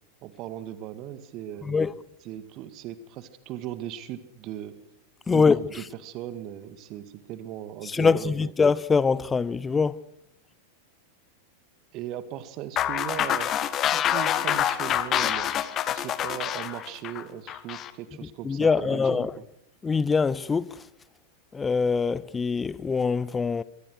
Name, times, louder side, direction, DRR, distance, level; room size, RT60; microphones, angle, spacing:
voice 1, 0.2-1.8 2.2-4.8 5.3-8.5 11.9-13.5 13.9-15.5 15.9-19.3, right 11 dB, 40° right, 1.9 m, -38 dB
voice 2, 1.6-1.9 5.3-5.6 7.8-10.0 18.4-19.3 19.8-20.8 21.5-23.6, left 5 dB, 15° left, 0.8 m, -23 dB
sound 1, 12.8-17.9, left 10 dB, 30° left, 1.7 m, -26 dB
25.5 x 23.5 x 6.5 m
figure-of-eight pair, 90°, 0 cm